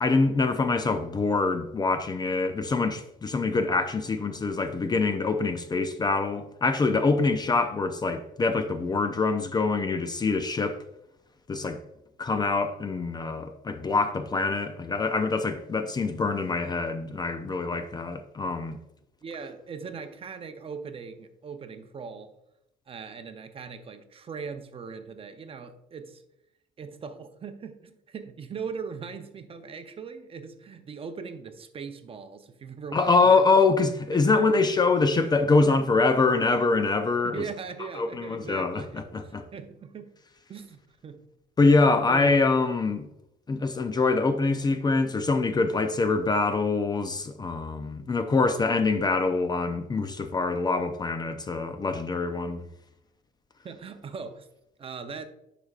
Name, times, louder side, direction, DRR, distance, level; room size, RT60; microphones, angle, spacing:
voice 1, 0.0-10.8 11.5-11.8 12.2-18.8 32.9-37.4 37.9-39.4 41.6-43.1 43.5-52.7, left 3 dB, 25° left, 0.5 m, -24 dB
voice 2, 19.2-22.3 22.9-26.2 26.8-33.4 34.1-34.3 37.2-40.1 40.5-41.2 42.1-42.4 53.6-54.5 54.8-55.3, right 5 dB, 35° right, 0.6 m, -40 dB
9.8 x 5.0 x 2.4 m
cardioid pair, 110°, 17 cm